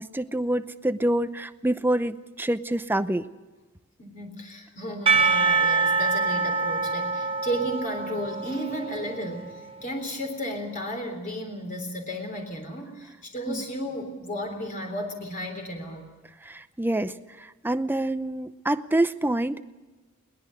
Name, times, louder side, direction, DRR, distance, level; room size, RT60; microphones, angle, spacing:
voice 1, 0.0-3.3 13.5-13.6 16.4-19.6, right 1 dB, 10° right, 11 dB, 0.7 m, -27 dB
voice 2, 4.0-16.1, equal, 40° left, 3 dB, 3.6 m, -33 dB
Percussion / Church bell, 5.1-9.8, right 4 dB, 25° right, 1.2 m, -25 dB
22.0 x 20.0 x 6.5 m, 1.2 s
head